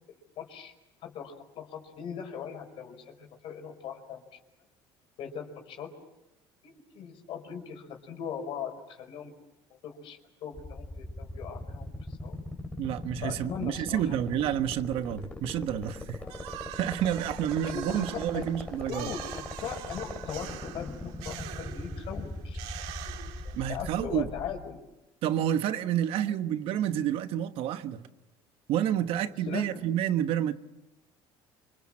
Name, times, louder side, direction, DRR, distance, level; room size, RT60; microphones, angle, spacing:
voice 1, 0.4-0.7 1.0-4.2 5.2-5.9 6.6-9.3 9.8-11.9 12.2-12.4 13.2-14.2 16.2-16.4 17.5-18.4 18.9-22.6 22.9-23.0 23.4-24.8 29.5-29.6, left 7 dB, 60° left, 5.0 m, -39 dB
sound 1, 10.6-24.5, left 1 dB, 15° left, 3.4 m, -39 dB
voice 2, 12.8-16.2 16.7-19.1 23.5-24.3 25.2-28.1 28.7-30.5, right 10 dB, 65° right, 1.3 m, -29 dB
sound 2, 16.3-23.9, right 13 dB, 80° right, 1.9 m, -44 dB
27.0 x 25.0 x 7.5 m
cardioid pair, 130°, 10 cm